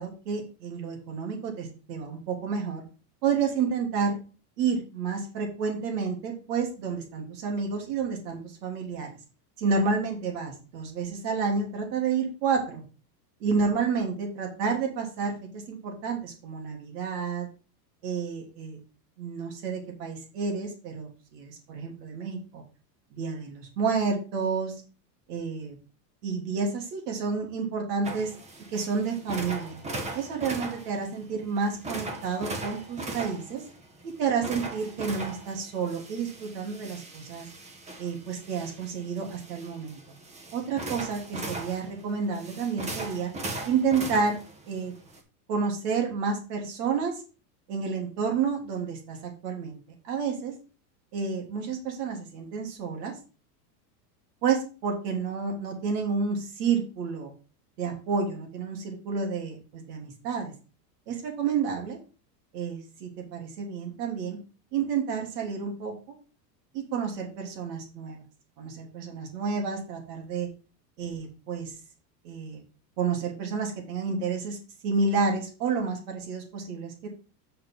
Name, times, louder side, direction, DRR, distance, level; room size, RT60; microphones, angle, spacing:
voice 1, 0.0-2.8 3.2-4.2 4.6-9.1 9.6-12.8 13.4-17.5 18.0-18.8 19.2-22.6 23.1-24.7 25.3-25.7 26.2-28.4 28.7-29.8 30.1-33.6 34.2-37.5 38.0-40.0 40.5-43.3 43.6-44.4 44.7-44.9 45.5-47.2 47.7-49.8 50.0-50.5 51.1-53.1 54.4-57.3 57.8-60.5 61.1-62.0 62.5-64.4 64.7-66.1 66.7-68.2 68.6-70.5 71.0-71.7 72.2-72.6 73.0-77.1, right 5 dB, 75° right, 1 dB, 3.1 m, -30 dB
sound 1, 28.0-45.2, right 2 dB, 15° right, 1.1 m, -39 dB
8.0 x 6.5 x 3.9 m, 0.34 s
supercardioid pair, 160°, 49 cm